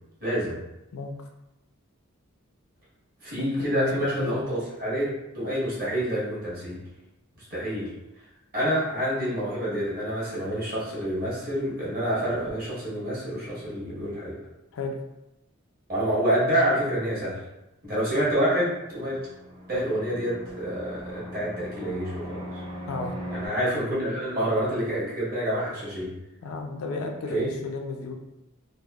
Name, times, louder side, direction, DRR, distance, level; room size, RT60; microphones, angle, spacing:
voice 1, 0.2-0.6 3.2-6.8 7.5-7.9 8.5-14.4 15.9-17.4 17.8-19.2 19.7-22.6 23.3-26.1 27.3-27.5, equal, 45° right, -7 dB, 1.2 m, -27 dB
voice 2, 3.4-4.4 14.7-15.0 22.9-23.1 26.4-28.2, left 3 dB, 75° left, 2 dB, 0.4 m, -33 dB
Fixed-wing aircraft airplane, 18.7-23.5, equal, 20° right, 0.4 m, -39 dB
3.3 x 2.0 x 2.3 m, 0.91 s
head